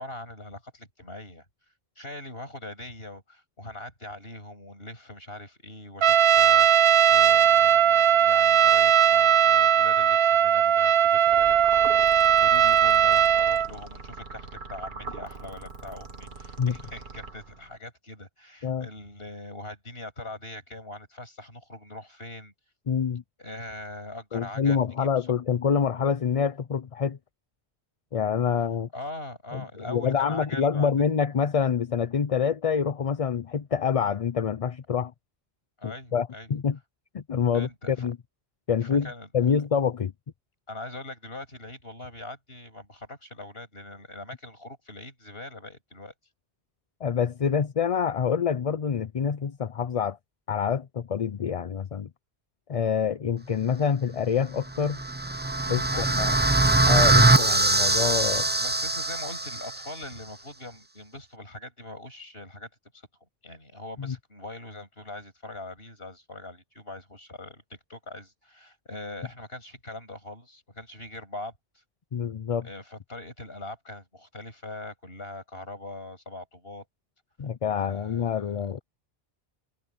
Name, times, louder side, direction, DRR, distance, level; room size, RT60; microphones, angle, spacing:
voice 1, 0.0-1.4 2.0-22.5 23.4-25.3 28.9-30.9 35.8-36.5 37.5-38.1 38.8-39.3 40.7-46.1 55.9-56.4 58.6-63.0 63.4-71.5 72.6-76.8 77.7-78.7, left 2 dB, 70° left, 8.1 m, -42 dB
Trumpet, 6.0-13.7, right 9 dB, 75° right, 0.9 m, -19 dB
sound 1, 11.3-17.8, right 3 dB, 50° right, 1.5 m, -41 dB
voice 2, 22.9-23.2 24.3-27.2 28.1-28.9 29.5-35.1 35.8-36.8 37.1-38.2 38.7-40.1 47.0-50.2 50.5-52.1 52.7-55.0 55.7-56.4 56.9-58.5 64.0-64.1 72.1-72.7 77.4-78.8, left 7 dB, 40° left, 0.6 m, -26 dB
sound 2, 54.8-59.8, right 2 dB, 15° right, 0.5 m, -22 dB
omnidirectional pair, 1.1 m